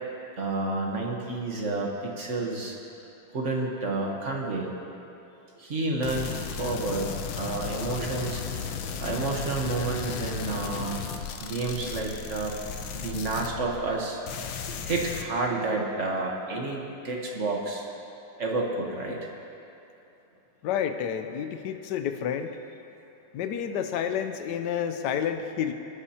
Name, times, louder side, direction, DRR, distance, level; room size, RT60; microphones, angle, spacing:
voice 1, 0.4-2.7 3.3-4.7 5.6-7.1 7.3-8.4 9.0-11.0 11.4-12.6 12.9-14.2 14.8-17.8 18.4-19.2, right 3 dB, 40° right, -1 dB, 1.4 m, -30 dB
sound 1, 6.0-14.0 14.3-15.2, left 7 dB, 90° left, 1.5 m, -35 dB
voice 2, 20.6-22.5 23.3-25.7, left 8 dB, 70° left, 8 dB, 1.2 m, -29 dB
21.5 x 9.7 x 2.9 m, 2.7 s
omnidirectional pair, 2.2 m